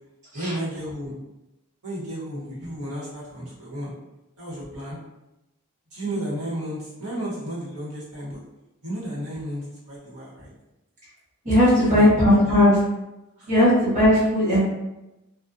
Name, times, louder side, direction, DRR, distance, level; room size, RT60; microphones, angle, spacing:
voice 1, 0.3-1.2 1.8-3.9 4.4-5.0 5.9-8.4 8.8-10.5 11.6-12.6 13.4-13.5, right 1 dB, 90° right, -8 dB, 1.1 m, -33 dB
voice 2, 11.4-12.8 13.4-14.6, left 1 dB, 35° right, -9 dB, 1.0 m, -17 dB
2.4 x 2.2 x 2.6 m, 0.95 s
head